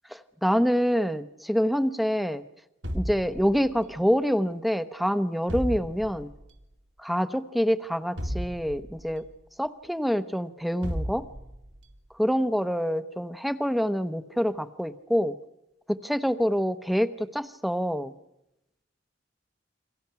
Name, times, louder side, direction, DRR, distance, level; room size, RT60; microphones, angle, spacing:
voice 1, 0.4-2.4 2.9-6.3 7.0-9.3 9.6-11.3 12.2-15.4 15.9-18.1, equal, ahead, 12 dB, 0.8 m, -26 dB
sound 1, 2.8-4.0 5.5-6.4 8.2-9.3 10.8-11.8, equal, 70° right, 2.5 m, -34 dB
29.5 x 24.5 x 5.8 m, 0.86 s
head